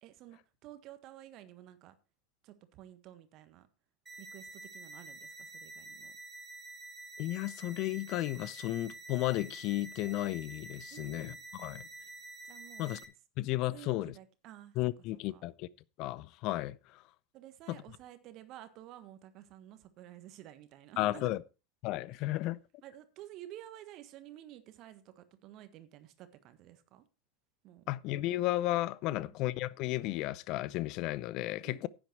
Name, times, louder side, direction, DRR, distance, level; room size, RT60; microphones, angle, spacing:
voice 1, 0.0-1.9 2.4-3.7 4.2-6.2 10.9-11.4 12.4-12.9 13.7-14.8 15.3-15.4 17.3-21.3 22.8-27.0 27.6-27.9 29.0-29.3 31.6-31.9, right 13 dB, 50° right, 1.5 m, -52 dB
sound 1, 4.1-13.1, right 3 dB, 15° right, 2.3 m, -48 dB
voice 2, 7.2-11.9 12.8-13.0 13.4-14.1 14.8-15.7 16.0-17.0 17.7-17.8 21.0-21.4 21.8-22.6 27.9-31.9, left 16 dB, 50° left, 0.6 m, -34 dB
10.5 x 8.8 x 4.5 m
hypercardioid pair, 90°, 0 cm